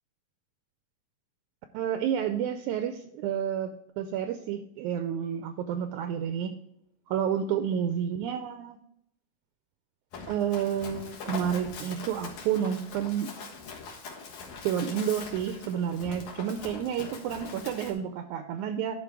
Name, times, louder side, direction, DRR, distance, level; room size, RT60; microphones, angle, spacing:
voice 1, 1.7-6.5 7.1-8.8 10.3-13.3 14.6-19.0, right 9 dB, 80° right, 8 dB, 1.8 m, -30 dB
Run, 10.1-17.9, left 5 dB, 65° left, 2.7 m, -42 dB
11.0 x 4.6 x 4.8 m, 0.77 s
omnidirectional pair, 3.8 m